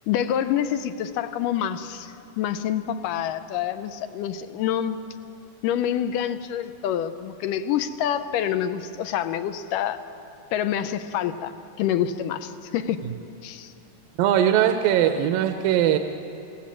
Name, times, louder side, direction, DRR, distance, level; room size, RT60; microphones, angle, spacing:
voice 1, 0.1-5.0 5.6-10.0 10.5-13.1 13.4-13.7, left 10 dB, 75° left, 10 dB, 2.3 m, -27 dB
voice 2, 14.2-16.0, right 10 dB, 85° right, 7 dB, 2.5 m, -20 dB
26.0 x 16.5 x 7.4 m, 2.7 s
omnidirectional pair, 4.0 m